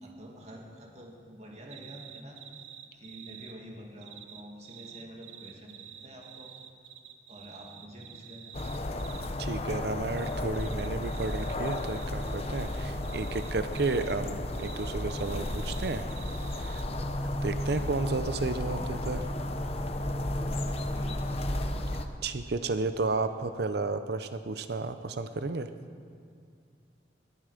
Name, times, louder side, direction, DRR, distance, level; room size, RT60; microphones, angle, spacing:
voice 1, 0.0-2.4 2.9-6.5 7.3-8.5 17.6-17.9 20.6-21.4, equal, 35° right, -1 dB, 2.4 m, -48 dB
sound 1, 1.7-3.6 4.0-9.3 10.2-14.2 14.5-16.8, right 10 dB, 85° right, 1.0 m, -49 dB
sound 2, 8.5-22.0, left 1 dB, 35° left, 0.8 m, -33 dB
voice 2, 9.4-16.1 16.6-16.8 17.4-19.3 22.2-25.7, right 3 dB, 60° right, 10 dB, 0.6 m, -32 dB
20.0 x 11.0 x 5.1 m, 2.2 s
head